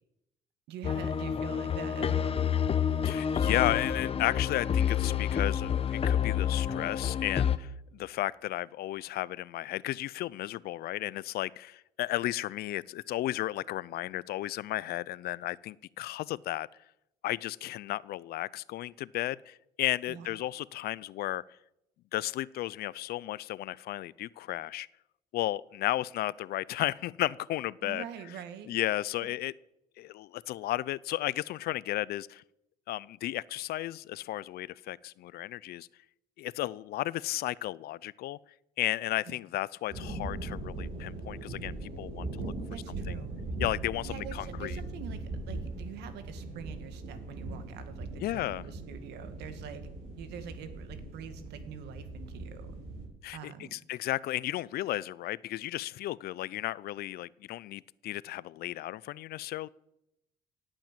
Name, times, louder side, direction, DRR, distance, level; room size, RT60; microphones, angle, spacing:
voice 1, 0.7-2.4 20.1-20.4 27.8-28.7 29.2-29.3 39.3-39.4 42.7-43.4 44.0-49.9 50.2-52.8 53.3-53.8, right 8 dB, 80° right, 9 dB, 2.0 m, -45 dB
sound 1, 0.8-7.6, left 8 dB, 35° left, 0.9 m, -28 dB
voice 2, 3.0-16.7 17.2-21.4 22.1-24.9 25.3-28.0 28.7-29.5 30.0-32.4 32.9-35.9 36.4-38.4 38.8-42.5 43.6-44.8 48.2-48.6 53.2-59.7, left 15 dB, 65° left, 22 dB, 0.5 m, -34 dB
sound 2, 39.9-53.1, right 2 dB, 60° right, 6.8 m, -40 dB
17.5 x 9.0 x 7.5 m, 0.85 s
cardioid pair, 110°, 17 cm